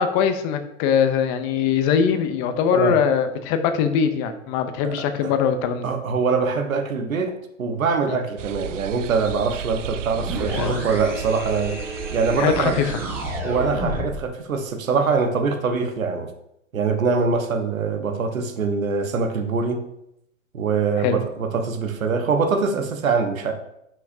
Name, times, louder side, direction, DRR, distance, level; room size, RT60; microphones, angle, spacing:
voice 1, 0.0-5.9 8.1-8.2 10.5-10.8 12.4-13.0 21.0-21.2, left 7 dB, 25° left, 9 dB, 0.6 m, -22 dB
voice 2, 4.8-5.3 5.8-7.3 7.6-11.8 12.1-12.8 13.4-16.3 16.7-19.8 20.5-23.5, right 5 dB, 80° right, 5 dB, 1.3 m, -23 dB
sound 1, 8.4-13.4, right 10 dB, 65° right, 0.5 m, -34 dB
sound 2, 10.1-14.3, equal, 5° right, 1.2 m, -31 dB
10.0 x 6.0 x 2.7 m, 0.79 s
hypercardioid pair, 130°, 40 cm